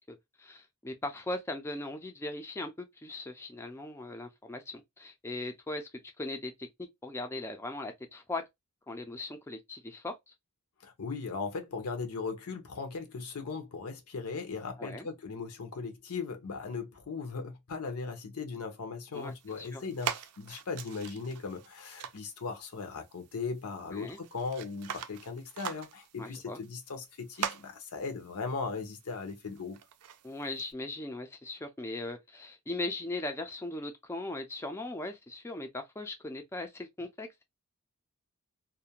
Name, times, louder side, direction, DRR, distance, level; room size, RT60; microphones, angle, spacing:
voice 1, 0.1-6.7 7.0-8.4 8.9-10.3 14.8-15.1 19.1-19.8 23.9-24.2 26.2-26.6 30.2-37.4, left 2 dB, 10° left, 0.3 m, -39 dB
voice 2, 10.8-29.8, left 4 dB, 80° left, 0.7 m, -38 dB
sound 1, 19.1-30.7, right 8 dB, 90° right, 0.4 m, -43 dB
2.4 x 2.1 x 2.8 m
head